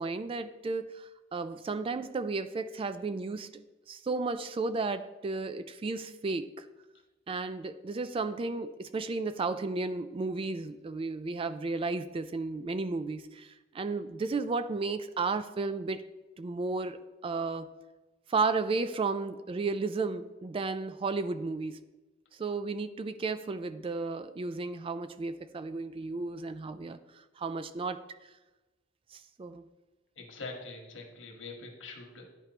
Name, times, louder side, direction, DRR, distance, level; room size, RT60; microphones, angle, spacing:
voice 1, 0.0-3.6 3.9-6.7 7.3-16.0 16.4-17.7 18.3-21.8 22.3-28.0 29.1-29.6, right 3 dB, 30° right, 0.3 m, -33 dB
voice 2, 30.2-32.3, left 3 dB, 85° left, 1.4 m, -44 dB
11.0 x 4.5 x 2.9 m
head